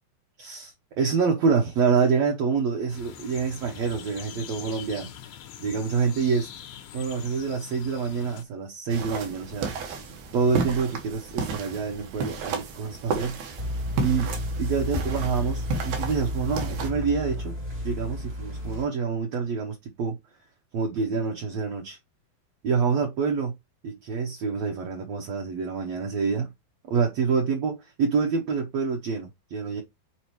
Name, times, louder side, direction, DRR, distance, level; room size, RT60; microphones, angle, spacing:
voice 1, 0.4-5.1 5.6-6.5 6.9-9.7 10.3-13.4 14.0-14.3 14.6-17.6 17.8-20.2 20.7-22.0 22.6-23.5 23.8-26.5 26.9-29.8, right 5 dB, 65° right, 1.7 m, -27 dB
sound 1, 2.9-8.4, left 9 dB, 70° left, 2.0 m, -43 dB
sound 2, 8.9-16.9, right 4 dB, 80° right, 3.4 m, -33 dB
sound 3, 13.6-18.9, left 1 dB, 35° right, 0.9 m, -32 dB
7.8 x 4.4 x 3.1 m
omnidirectional pair, 4.3 m